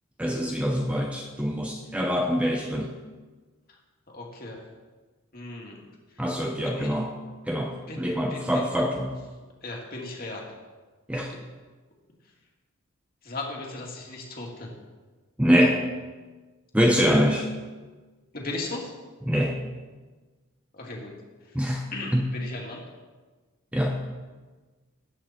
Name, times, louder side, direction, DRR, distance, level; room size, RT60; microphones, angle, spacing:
voice 1, 0.2-2.9 6.2-7.1 7.5-9.1 11.1-11.3 15.4-15.9 16.7-17.5 19.2-19.6 21.5-21.8 22.1-22.3 23.7-24.0, equal, 5° right, 1 dB, 0.8 m, -24 dB
voice 2, 4.1-4.6 5.3-5.8 6.7-7.0 7.8-8.0 8.3-8.6 9.6-10.5 11.3-11.4 13.2-14.7 18.3-18.8 20.7-21.1 21.9-22.8, left 2 dB, 40° left, -1 dB, 2.5 m, -36 dB
18.0 x 8.8 x 4.4 m, 1.3 s
head